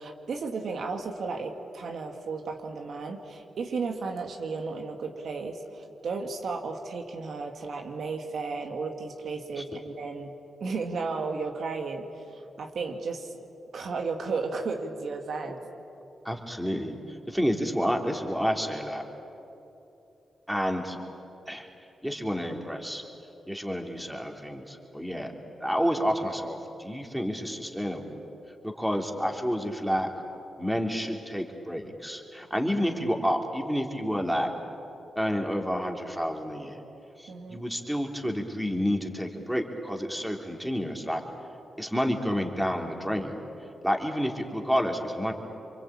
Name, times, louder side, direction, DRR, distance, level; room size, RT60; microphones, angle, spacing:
voice 1, 0.0-10.3 10.6-12.1 12.3-13.4 13.7-15.6 37.3-37.6, right 4 dB, 70° right, 3 dB, 2.2 m, -34 dB
voice 2, 16.2-19.0 20.5-21.0 21.5-21.7 22.0-23.0 23.5-25.3 25.6-28.2 28.6-30.1 30.6-34.5 35.1-36.8 37.2-41.2 41.8-43.4 43.8-45.3, equal, 5° right, 2 dB, 3.3 m, -29 dB
27.0 x 24.0 x 8.8 m, 2.9 s
cardioid pair, 65°, 0 cm